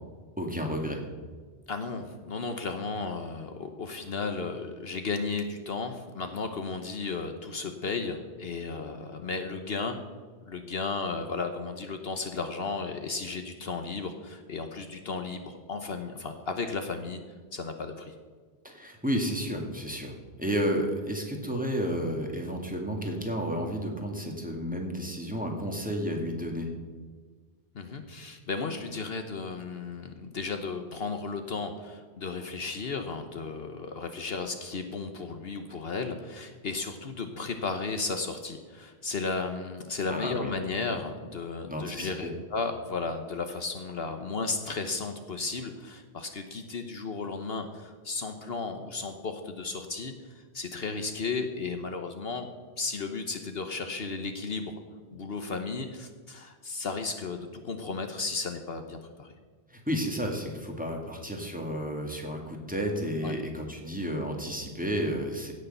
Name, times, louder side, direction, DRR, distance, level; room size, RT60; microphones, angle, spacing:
voice 1, 0.4-1.0 18.6-26.7 40.1-40.5 41.7-42.3 59.7-65.5, equal, 5° right, 1 dB, 2.1 m, -32 dB
voice 2, 1.7-10.0 10.4-17.2 17.5-18.1 27.7-52.5 52.8-54.7 55.1-59.3 63.2-63.4, left 4 dB, 60° left, 6 dB, 1.2 m, -34 dB
16.5 x 6.7 x 6.8 m, 1.5 s
omnidirectional pair, 1.2 m